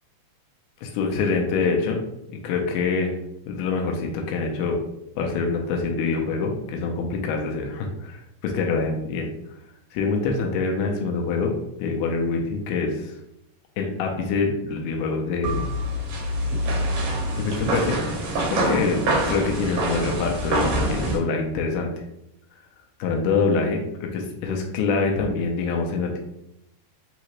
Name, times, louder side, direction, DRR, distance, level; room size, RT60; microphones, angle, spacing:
voice 1, 0.8-2.0 2.3-3.1 3.5-4.8 5.2-9.3 9.9-11.5 11.8-13.1 13.8-15.7 17.4-18.0 18.5-19.0 19.3-21.9 23.0-26.2, left 4 dB, 80° left, 1 dB, 2.3 m, -25 dB
sound 1, 15.4-21.2, right 1 dB, 75° right, 1.5 m, -25 dB
5.3 x 2.8 x 3.0 m, 0.81 s
omnidirectional pair, 3.8 m